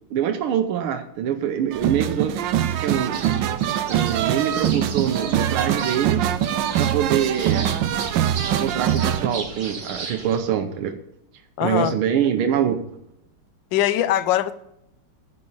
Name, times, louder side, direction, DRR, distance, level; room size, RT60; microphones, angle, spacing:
voice 1, 0.1-2.4 2.8-3.2 3.9-6.3 6.8-7.7 8.5-11.0 11.6-12.8, right 9 dB, 90° right, 7 dB, 1.7 m, -24 dB
sound 1, 1.7-9.3, right 10 dB, 70° right, 1.2 m, -23 dB
sound 2, 3.1-10.4, right 4 dB, 45° right, 2.1 m, -36 dB
voice 2, 11.6-11.9 13.7-14.5, left 12 dB, 70° left, 13 dB, 1.3 m, -21 dB
11.0 x 5.4 x 8.5 m, 0.77 s
omnidirectional pair, 2.3 m